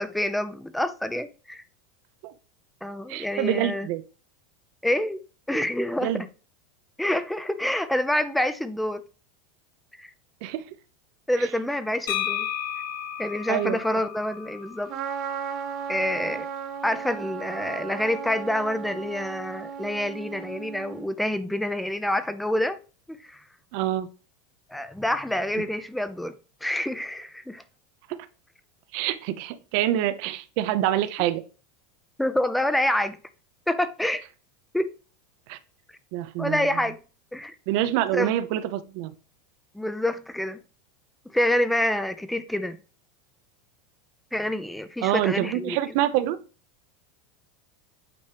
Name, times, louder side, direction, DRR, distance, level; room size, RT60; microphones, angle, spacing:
voice 1, 0.0-1.6 2.8-3.9 4.8-5.2 5.5-6.3 7.0-9.0 10.0-10.1 11.3-12.5 13.2-14.9 15.9-16.5 16.8-22.8 23.1-23.4 24.7-26.4 26.6-27.6 32.2-33.2 33.7-34.2 34.7-34.9 36.4-37.0 37.3-37.6 38.1-38.3 39.7-40.6 41.3-42.8 44.3-45.8, left 1 dB, 5° left, 0.5 m, -27 dB
voice 2, 3.1-4.0 6.0-6.2 10.4-10.6 11.4-11.5 13.5-13.8 23.7-24.1 28.1-28.2 28.9-31.4 35.5-35.6 36.1-36.7 37.7-39.1 45.0-46.4, right 13 dB, 60° right, 0.7 m, -26 dB
sound 1, 12.1-15.8, left 10 dB, 75° left, 1.4 m, -33 dB
Trumpet, 14.9-21.1, right 7 dB, 45° right, 1.4 m, -35 dB
8.4 x 3.1 x 5.0 m
supercardioid pair, 135°, 0 cm